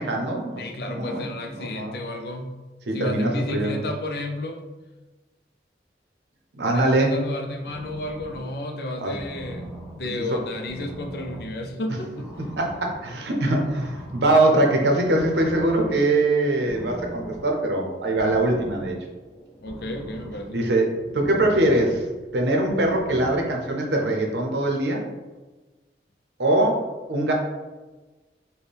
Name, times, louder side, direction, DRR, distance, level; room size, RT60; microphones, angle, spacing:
voice 1, 0.0-0.6 0.9-1.2 1.5-1.9 2.9-3.8 6.6-7.2 9.0-9.1 10.3-10.4 12.5-18.9 20.5-22.1 22.3-25.0 26.4-27.3, right 1 dB, 75° right, 1 dB, 0.7 m, -22 dB
voice 2, 0.6-2.6 2.9-4.6 6.6-9.7 10.0-12.3 19.6-20.6, left 1 dB, 60° left, 3 dB, 0.5 m, -32 dB
sound 1, 7.2-23.5, right 1 dB, 5° left, 0.5 m, -42 dB
4.3 x 2.2 x 3.3 m, 1.2 s
head